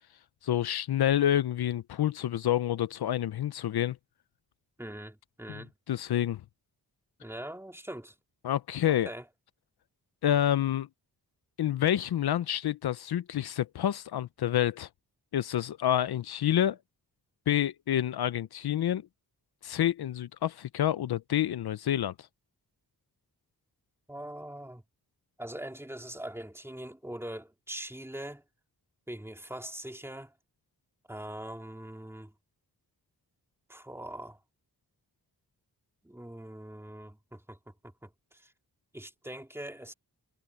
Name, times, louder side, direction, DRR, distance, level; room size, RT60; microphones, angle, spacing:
voice 1, 0.4-4.0 5.5-5.6 5.9-6.4 8.4-9.1 10.2-10.9 11.6-14.9 15.3-16.8 17.5-19.0 19.6-22.1, left 11 dB, 80° left, 0.6 m, -28 dB
voice 2, 4.8-5.7 7.2-8.1 8.9-9.2 24.1-24.8 25.4-28.4 29.1-30.3 31.1-32.3 33.7-34.4 36.0-37.7 38.0-38.5 38.9-39.9, right 1 dB, 5° right, 3.2 m, -42 dB
wide cardioid pair, 165°, 38 cm